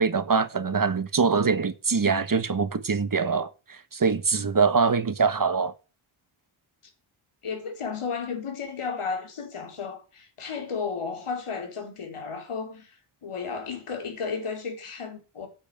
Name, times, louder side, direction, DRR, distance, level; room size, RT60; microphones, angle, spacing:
voice 1, 0.0-3.5 3.9-5.7, right 5 dB, 40° right, 1.5 m, -23 dB
voice 2, 7.4-15.5, left 5 dB, 85° left, 4.4 m, -33 dB
8.9 x 8.2 x 8.8 m
wide cardioid pair, 100°, 50 cm